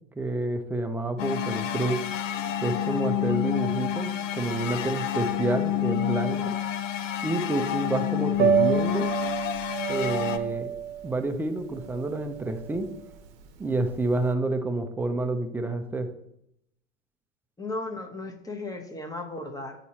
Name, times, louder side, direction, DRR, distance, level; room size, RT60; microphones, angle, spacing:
voice 1, 0.2-2.0 2.6-6.5 7.2-9.1 9.9-10.7 11.0-12.9 13.6-16.1, right 2 dB, 5° right, 6 dB, 0.3 m, -29 dB
sound 1, 1.2-10.4, left 10 dB, 75° left, 0.6 m, -28 dB
Piano, 8.3-14.3, right 10 dB, 45° right, 0.8 m, -29 dB
voice 2, 17.6-19.8, left 2 dB, 10° left, 3 dB, 0.9 m, -35 dB
8.0 x 2.9 x 4.1 m, 0.76 s
hypercardioid pair, 95°, 37 cm